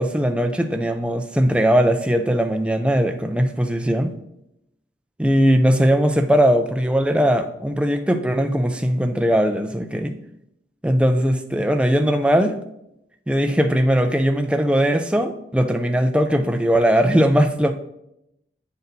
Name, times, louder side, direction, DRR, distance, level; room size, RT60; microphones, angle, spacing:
voice 1, 0.0-4.1 5.2-10.2 10.8-12.6 13.3-17.7, equal, 5° right, 6 dB, 0.4 m, -19 dB
9.2 x 4.2 x 2.6 m, 0.80 s
head